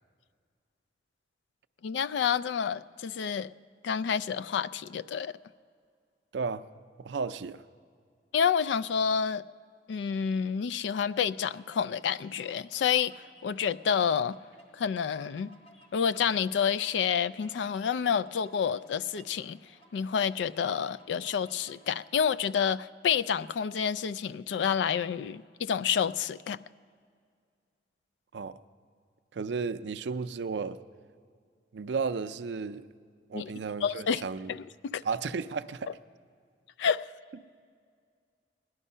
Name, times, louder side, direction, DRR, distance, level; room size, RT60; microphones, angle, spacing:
voice 1, 1.8-3.5 3.8-5.4 8.3-9.5 9.9-13.1 13.4-14.4 14.7-15.5 15.9-19.6 19.9-26.6 33.3-33.5 33.8-34.2 34.5-35.0 36.8-37.0, left 7 dB, 80° left, 16 dB, 0.3 m, -29 dB
voice 2, 6.3-6.6 7.0-7.6 28.3-28.6 29.3-30.8 31.7-32.9 33.3-34.5 35.0-35.9, right 5 dB, 75° right, 13 dB, 0.4 m, -33 dB
sound 1, 10.9-22.0, equal, 30° left, 1.2 m, -59 dB
17.5 x 11.0 x 5.5 m, 2.1 s
head